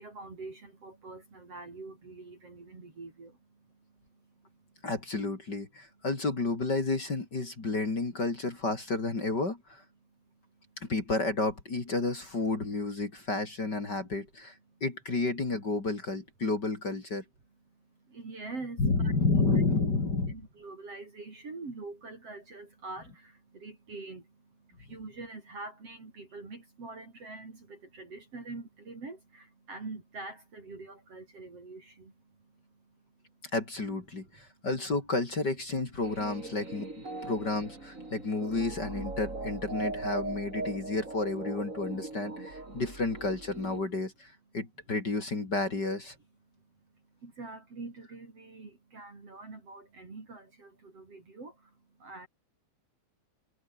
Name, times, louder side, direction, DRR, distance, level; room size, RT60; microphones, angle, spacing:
voice 1, 0.0-3.4 18.1-19.1 19.6-19.8 20.3-24.2 24.8-32.1 47.2-51.5 52.0-52.3, right 3 dB, 40° right, 5.8 m, -44 dB
voice 2, 4.8-9.8 10.8-14.6 14.8-17.2 18.8-20.3 33.5-46.2, left 3 dB, 30° left, 3.7 m, -31 dB
sound 1, 36.0-43.8, right 2 dB, 20° right, 4.9 m, -39 dB
omnidirectional pair, 4.1 m